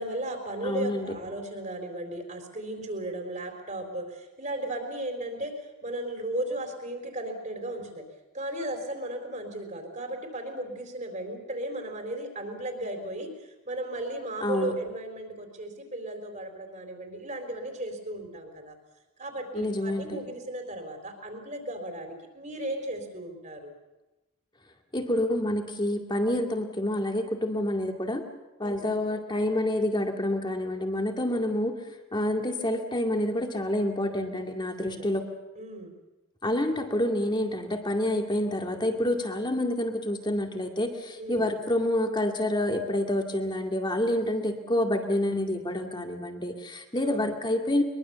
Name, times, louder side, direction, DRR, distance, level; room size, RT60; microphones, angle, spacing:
voice 1, 0.0-8.0 8.3-18.8 19.2-23.7 28.6-28.9 34.8-35.1 35.6-36.0 41.2-41.5 47.0-47.4, right 1 dB, 35° right, 4 dB, 3.9 m, -35 dB
voice 2, 0.6-1.1 14.4-14.7 19.5-20.2 24.9-28.2 28.6-31.7 32.1-35.2 36.4-47.8, left 1 dB, 20° left, 3 dB, 2.2 m, -28 dB
23.0 x 22.5 x 7.0 m, 1.0 s
head